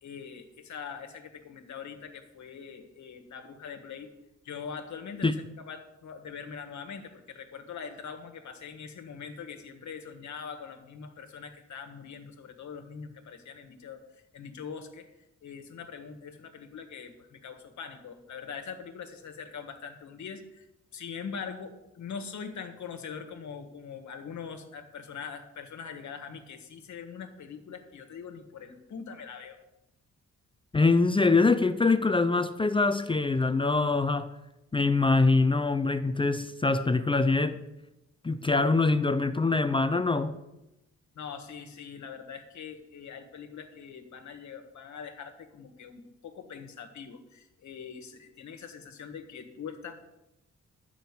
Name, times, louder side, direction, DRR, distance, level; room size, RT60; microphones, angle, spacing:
voice 1, 0.0-4.1 4.4-14.0 14.3-15.1 15.4-20.7 20.9-29.6 41.1-50.0, left 6 dB, 70° left, 1.5 m, -42 dB
voice 2, 30.7-34.3 34.7-37.6 38.2-40.4, left 3 dB, 15° left, 0.5 m, -24 dB
12.0 x 6.1 x 8.3 m
wide cardioid pair, 140°, 30 cm